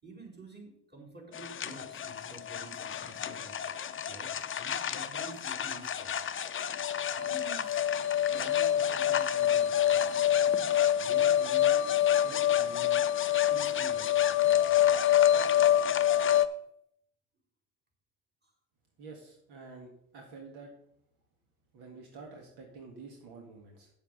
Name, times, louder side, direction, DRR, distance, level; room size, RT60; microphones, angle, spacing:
voice 1, 0.0-3.6 4.1-6.2 6.5-7.9 8.3-10.5 11.0-13.0 13.5-14.9 16.4-16.6 18.4-18.5, right 2 dB, 25° right, -2 dB, 4.2 m, -50 dB
sound 1, 1.3-16.5, left 11 dB, 30° left, 0.7 m, -27 dB
voice 2, 19.0-20.7 21.7-23.9, right 4 dB, 65° right, 1 dB, 1.9 m, -48 dB
8.4 x 7.4 x 5.4 m, 0.72 s
hypercardioid pair, 65°, 42 cm